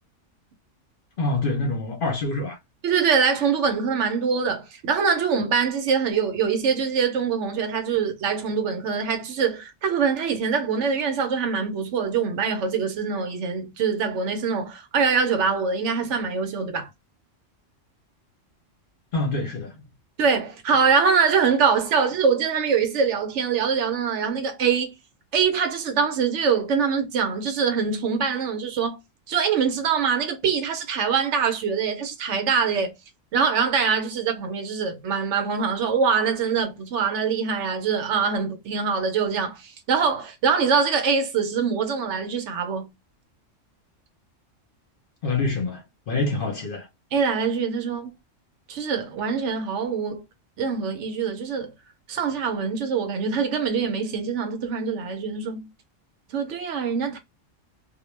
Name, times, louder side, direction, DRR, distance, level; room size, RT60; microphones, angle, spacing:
voice 1, 1.2-2.6 19.1-19.7 45.2-46.9, left 2 dB, 50° left, 0.8 m, -26 dB
voice 2, 2.8-16.9 20.2-24.9 25.3-29.0 29.3-32.9 33.3-42.9 47.1-48.2 48.7-50.2 50.6-51.7 52.1-55.7 56.3-57.2, right 6 dB, 70° right, 0.9 m, -24 dB
2.2 x 2.1 x 3.1 m
omnidirectional pair, 1.3 m